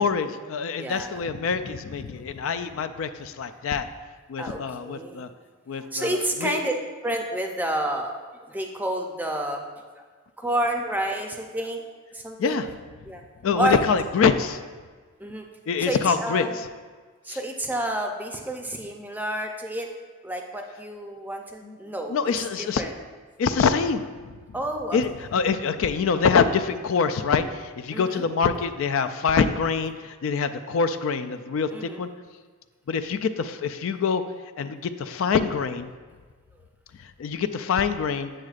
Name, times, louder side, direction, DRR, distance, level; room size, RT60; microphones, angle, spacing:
voice 1, 0.0-3.9 4.3-5.3 5.7-6.6 12.4-12.7 13.4-14.6 15.7-16.5 17.3-17.4 21.6-21.8 22.1-22.8 23.4-24.3 24.9-32.1 32.9-34.2 34.6-35.9 37.2-38.3, left 5 dB, 70° left, 10 dB, 0.3 m, -25 dB
voice 2, 0.8-1.2 2.1-2.3 4.4-5.2 5.8-6.7 7.0-8.1 8.5-9.6 9.9-10.0 10.4-11.8 12.1-12.7 13.1-13.2 13.6-13.8 15.2-15.5 15.8-16.6 17.2-19.9 20.2-22.9 24.5-25.0 27.9-28.3 31.7-32.0, right 1 dB, 10° right, 3 dB, 0.5 m, -30 dB
7.8 x 7.4 x 2.4 m, 1.5 s
head